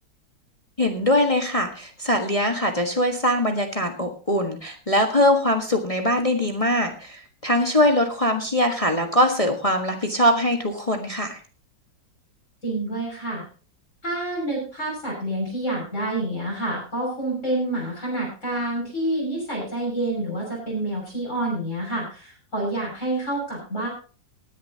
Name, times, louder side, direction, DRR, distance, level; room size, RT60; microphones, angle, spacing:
voice 1, 0.8-11.4, left 1 dB, 20° left, 4 dB, 1.4 m, -22 dB
voice 2, 12.6-13.5 14.0-23.9, right 1 dB, 40° left, -4 dB, 6.8 m, -28 dB
19.5 x 10.0 x 2.9 m, 0.35 s
omnidirectional pair, 2.0 m